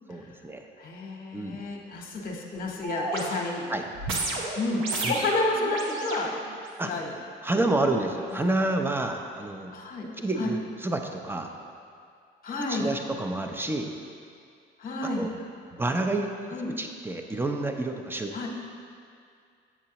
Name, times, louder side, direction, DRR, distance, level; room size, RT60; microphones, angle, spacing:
voice 1, 0.1-0.7 1.3-1.6 3.7-3.8 5.0-5.1 6.8-6.9 7.4-9.7 10.2-11.5 12.7-13.9 15.2-15.3 15.8-16.3 16.8-18.5, right 2 dB, 10° right, 4 dB, 0.5 m, -29 dB
voice 2, 0.8-3.7 4.6-6.3 6.8-7.1 8.3-8.4 9.7-10.1 10.4-10.5 12.4-12.9 14.8-15.3 16.5-16.7 18.3-18.5, left 2 dB, 45° left, 1 dB, 1.0 m, -30 dB
sound 1, 2.8-7.0 7.6-7.7, right 2 dB, 90° right, 0.9 m, -33 dB
7.3 x 6.6 x 2.9 m, 2.3 s
cardioid pair, 90°, 20 cm